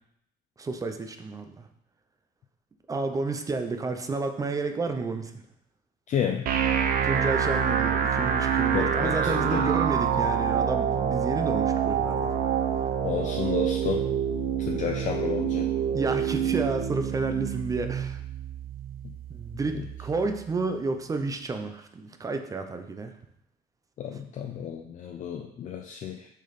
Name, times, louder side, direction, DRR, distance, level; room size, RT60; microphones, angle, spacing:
voice 1, 0.6-1.6 2.9-5.4 7.0-12.3 15.9-18.2 19.3-23.1, right 3 dB, 20° right, 7 dB, 0.5 m, -31 dB
voice 2, 6.1-6.5 8.7-9.8 13.0-14.1 14.6-15.7 19.0-19.1 19.7-19.8 24.0-26.3, left 8 dB, 45° left, 2 dB, 0.6 m, -31 dB
sound 1, 6.5-20.4, right 8 dB, 60° right, 0.7 m, -27 dB
6.5 x 5.3 x 4.1 m, 0.74 s
cardioid pair, 165°, 17 cm